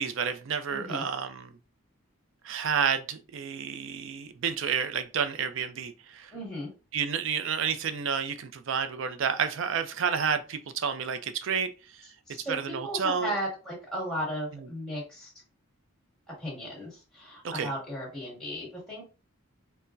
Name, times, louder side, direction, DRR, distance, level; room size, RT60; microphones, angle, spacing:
voice 1, 0.0-1.5 2.4-6.3 6.9-11.7 12.0-12.1 12.5-13.3 17.4-17.7, right 6 dB, 65° right, 0.4 m, -30 dB
voice 2, 0.7-1.1 6.3-6.7 12.3-15.3 16.4-19.0, equal, 5° left, 1.8 m, -35 dB
4.3 x 2.1 x 2.5 m
head